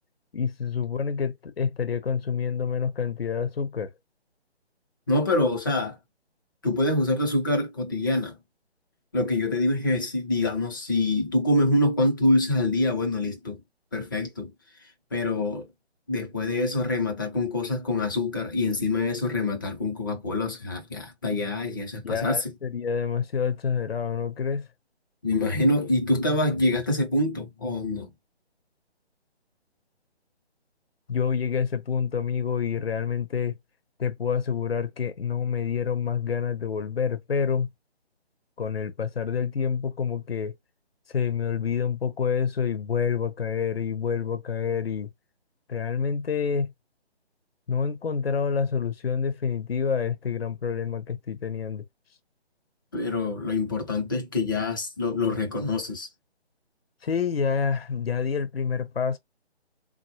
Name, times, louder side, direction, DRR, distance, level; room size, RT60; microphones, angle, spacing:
voice 1, 0.3-3.9 22.0-24.7 31.1-33.6 34.0-37.7 38.6-40.5 41.1-45.1 45.7-46.7 47.7-51.8 57.0-59.2, left 6 dB, 65° left, 0.7 m, -27 dB
voice 2, 5.1-6.0 6.6-8.4 9.1-13.6 13.9-14.5 15.1-15.7 16.1-22.5 25.2-28.1 52.9-56.1, left 2 dB, 20° left, 0.6 m, -25 dB
4.0 x 2.1 x 3.0 m
figure-of-eight pair, 145°, 33 cm